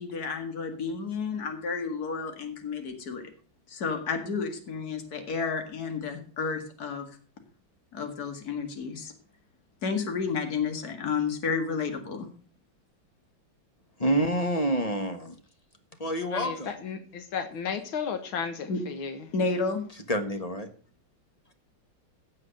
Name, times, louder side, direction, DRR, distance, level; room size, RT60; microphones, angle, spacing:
voice 1, 0.0-3.3 3.7-7.1 7.9-9.1 9.8-12.3 18.7-18.8 19.3-19.8, left 5 dB, 50° left, 5 dB, 2.4 m, -31 dB
voice 2, 14.0-15.4 16.0-16.7 20.1-20.7, right 1 dB, 20° left, 7 dB, 1.2 m, -27 dB
voice 3, 16.3-19.3, left 6 dB, 85° left, 8 dB, 2.1 m, -34 dB
16.0 x 5.7 x 6.3 m, 0.42 s
omnidirectional pair, 2.2 m